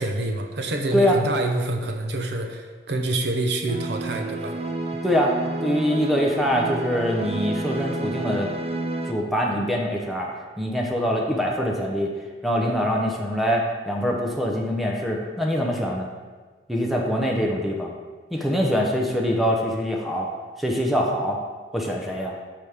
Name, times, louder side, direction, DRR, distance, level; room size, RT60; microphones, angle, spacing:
voice 1, 0.0-4.6, right 2 dB, 65° right, 3 dB, 0.8 m, -27 dB
sound 1, 3.7-9.1, right 2 dB, 35° right, 0.6 m, -30 dB
voice 2, 5.0-8.5 9.0-10.3 10.6-12.1 12.4-16.1 16.7-17.9 18.3-20.3 20.6-21.4 21.7-22.3, equal, ahead, -1 dB, 0.9 m, -24 dB
14.0 x 4.9 x 3.6 m, 1.4 s
head